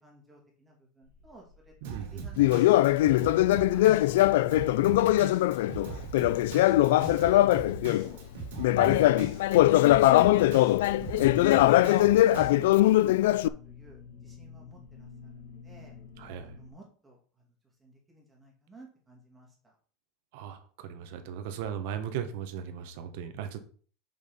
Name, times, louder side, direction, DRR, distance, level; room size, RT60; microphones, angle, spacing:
voice 1, 0.0-1.7 2.1-2.9 3.3-3.4 3.7-6.6 7.3-8.3 8.9-9.2 9.5-11.3 11.5-12.0 12.3-13.2 13.4-16.0 16.4-17.5 17.8-19.7, right 2 dB, 10° right, -1 dB, 2.3 m, -55 dB
sound 1, 1.0-16.7, left 6 dB, 45° left, 2.2 m, -52 dB
voice 2, 1.8-2.2 8.7-9.2 16.2-16.6 20.3-23.6, right 8 dB, 65° right, 8 dB, 1.3 m, -37 dB
Drum kit, 1.8-12.5, right 4 dB, 90° right, 2.6 m, -41 dB
Conversation, 2.4-8.1 8.6-13.5, left 15 dB, 90° left, 0.3 m, -21 dB
6.2 x 5.6 x 5.3 m, 0.44 s
supercardioid pair, 165°, 0 cm